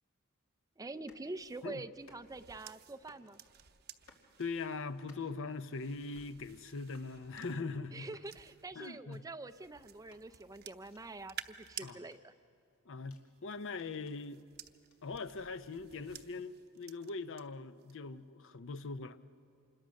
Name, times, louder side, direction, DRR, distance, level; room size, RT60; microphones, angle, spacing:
voice 1, 0.8-3.4 7.9-11.4 11.7-12.3, right 2 dB, 15° right, 0.4 m, -45 dB
sound 1, 0.9-1.3 1.9-2.5 2.9-3.3 3.9-4.3 4.9-5.4 5.9-6.3 6.9-7.1 7.9-8.3 8.9-9.2 9.9-10.2 10.9-11.0 11.9-13.3 13.9-14.2 14.9-15.0, left 3 dB, 80° left, 2.5 m, -64 dB
sound 2, 1.3-8.9 9.5-11.9 13.2-17.4 17.8-18.1, right 10 dB, 50° right, 0.8 m, -54 dB
voice 2, 4.4-8.1 8.8-9.3 11.8-12.1 12.9-14.4 15.0-19.2, left 4 dB, 60° left, 0.7 m, -41 dB
26.5 x 21.0 x 6.4 m
head